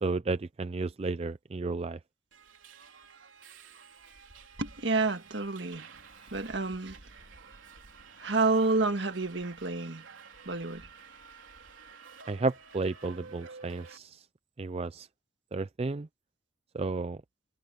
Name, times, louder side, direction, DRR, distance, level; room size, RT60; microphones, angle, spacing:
voice 1, 0.0-2.0 12.3-14.3 14.6-15.1 15.5-16.1 16.7-17.2, right 3 dB, 30° right, 0.4 m, -32 dB
Subway metro underground, 2.3-14.0, right 5 dB, 80° right, 3.5 m, -51 dB
voice 2, 4.6-6.0 6.3-7.3 8.2-10.1 10.5-10.9, right 3 dB, 65° right, 1.8 m, -29 dB
head